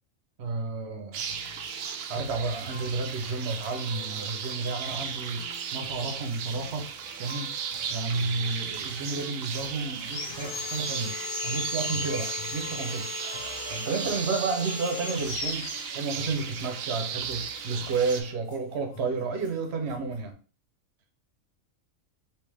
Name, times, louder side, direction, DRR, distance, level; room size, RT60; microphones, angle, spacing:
voice 1, 0.4-1.3 2.1-5.4 5.7-6.9 7.2-7.6 7.9-11.2 11.4-13.1 13.7-15.7 15.9-20.4, right 4 dB, 60° right, 0.9 m, -31 dB
sound 1, 1.1-18.2, right 7 dB, 85° right, 1.0 m, -36 dB
sound 2, 1.3-20.3, left 6 dB, 50° left, 0.8 m, -49 dB
Sawing, 10.0-16.5, left 4 dB, 70° left, 1.1 m, -37 dB
3.3 x 2.8 x 3.3 m
omnidirectional pair, 1.4 m